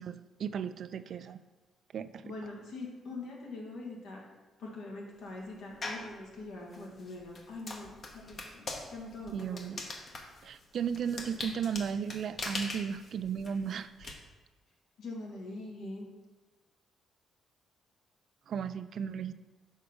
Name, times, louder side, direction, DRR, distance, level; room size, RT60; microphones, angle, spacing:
voice 1, 0.0-1.4 1.9-2.3 9.3-9.8 10.4-14.2 18.5-19.3, right 7 dB, 60° right, 12 dB, 0.3 m, -35 dB
voice 2, 2.2-4.2 4.6-10.0 15.0-16.1, left 2 dB, 80° left, -2 dB, 1.7 m, -43 dB
sound 1, 5.8-6.1 6.7-14.1, left 2 dB, 50° left, 1.1 m, -41 dB
6.4 x 4.5 x 5.2 m, 1.2 s
cardioid pair, 90°, 0 cm